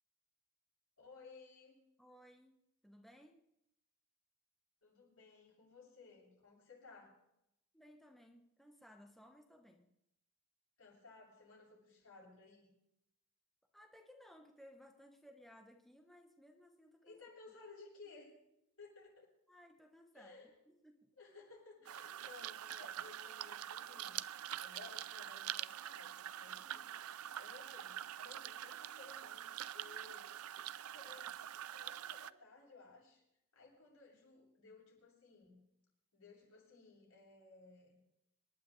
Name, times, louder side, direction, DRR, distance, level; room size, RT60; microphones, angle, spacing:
voice 1, 1.0-1.8 4.8-7.2 10.8-12.7 17.0-18.4 18.8-19.3 20.1-20.5 21.2-24.2 24.6-26.9 27.4-30.3 30.9-31.3 31.6-33.2 33.5-35.6 36.1-37.9, left 3 dB, 75° left, -3 dB, 7.4 m, -58 dB
voice 2, 2.0-3.4 7.7-9.9 13.7-17.2 19.5-20.4 20.7-21.1, equal, ahead, 3 dB, 1.0 m, -61 dB
sound 1, 21.9-32.3, right 11 dB, 80° right, 0.4 m, -45 dB
27.0 x 11.5 x 3.2 m, 0.81 s
head